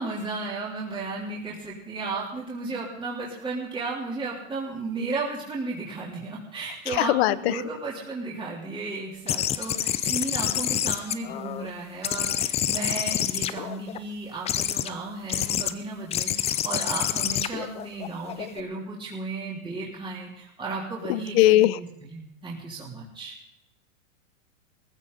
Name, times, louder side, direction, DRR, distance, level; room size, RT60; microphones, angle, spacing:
voice 1, 0.0-23.3, right 3 dB, 10° right, -5 dB, 3.6 m, -34 dB
voice 2, 7.0-7.5 21.1-21.7, left 16 dB, 50° left, 17 dB, 0.8 m, -19 dB
sound 1, 9.3-11.7 12.0-14.0 14.5-14.9 15.3-15.7 16.1-18.6, left 10 dB, 15° left, 0.5 m, -28 dB
18.5 x 15.5 x 4.1 m, 0.81 s
hypercardioid pair, 130°, 39 cm